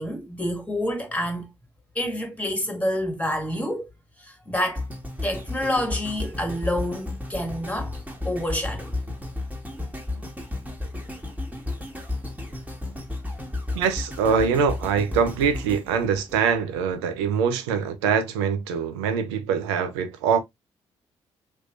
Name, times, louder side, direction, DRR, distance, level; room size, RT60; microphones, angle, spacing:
voice 1, 0.0-1.5 1.9-3.9 4.2-4.9 5.2-8.0 8.2-8.9 13.3-13.5, equal, 10° left, 1.8 m, -28 dB
sound 1, 4.8-17.0 17.5-17.6, left 2 dB, 10° right, 1.8 m, -33 dB
voice 2, 13.7-20.4, right 6 dB, 85° right, 0.6 m, -23 dB
3.3 x 3.1 x 2.5 m
hypercardioid pair, 50°, 14 cm